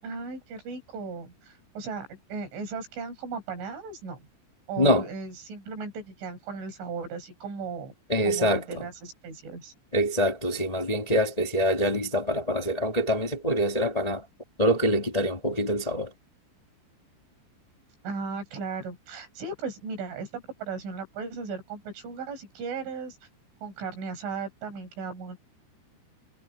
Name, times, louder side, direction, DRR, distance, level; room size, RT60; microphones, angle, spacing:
voice 1, 0.0-4.2 4.7-7.9 8.3-9.7 18.0-23.2 23.6-25.4, right 5 dB, 90° right, 8.4 m, -36 dB
voice 2, 4.8-5.1 8.1-8.8 9.9-14.2 14.6-16.1, equal, 45° left, 0.4 m, -25 dB
omnidirectional pair, 5.4 m